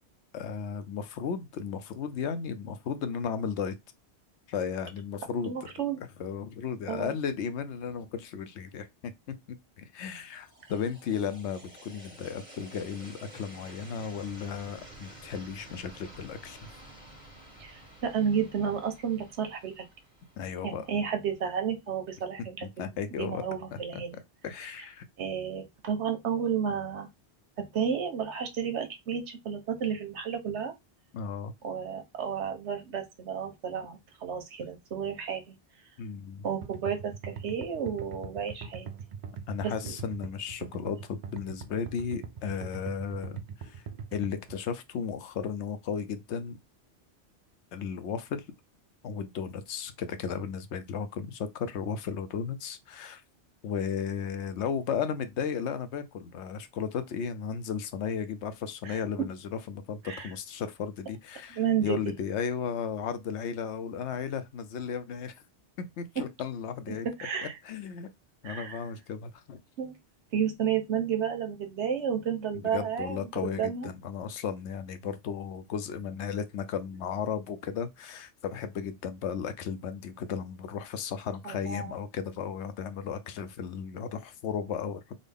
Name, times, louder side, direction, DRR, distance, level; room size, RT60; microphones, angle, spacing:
voice 1, 0.3-3.8 4.5-5.5 6.2-9.1 9.8-16.6 20.4-20.9 22.8-23.4 23.9-24.0 24.4-25.0 31.1-31.5 36.0-36.5 39.5-43.8 44.1-46.6 47.7-48.4 49.0-53.2 53.6-65.3 66.0-67.1 67.6-68.1 68.4-69.6 72.5-85.0, left 7 dB, 80° left, 0.9 m, -35 dB
voice 2, 5.4-6.0 6.9-7.1 17.6-19.8 20.6-22.7 23.1-24.2 25.2-27.1 27.6-30.7 31.6-35.5 36.4-38.9 39.6-39.9 58.8-59.0 60.0-60.3 61.5-62.0 66.9-67.6 68.4-68.8 69.8-69.9 70.3-73.9 81.4-81.9, right 7 dB, 80° right, 1.1 m, -32 dB
sound 1, 10.2-21.2, right 1 dB, 40° right, 1.5 m, -51 dB
sound 2, 36.6-44.6, right 6 dB, 60° right, 0.4 m, -41 dB
3.9 x 2.1 x 3.4 m
omnidirectional pair, 1.2 m